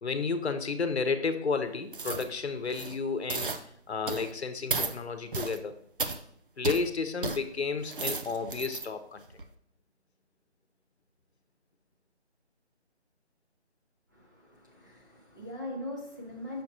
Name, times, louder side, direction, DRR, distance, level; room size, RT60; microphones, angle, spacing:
voice 1, 0.0-3.6 3.9-5.7 6.6-9.3, left 4 dB, 70° left, 9 dB, 0.9 m, -32 dB
sound 1, 1.9-2.3 2.7-3.0 3.3-3.6 4.1-4.3 4.7-4.9 5.3-5.6 6.0-6.2 6.6-6.8 7.2-7.4 7.8-8.9 9.3-9.4, right 3 dB, 50° right, 0.5 m, -33 dB
voice 2, 14.1-16.6, left 1 dB, 15° right, -5 dB, 0.7 m, -41 dB
6.5 x 5.8 x 2.9 m, 0.66 s
figure-of-eight pair, 170°, 34 cm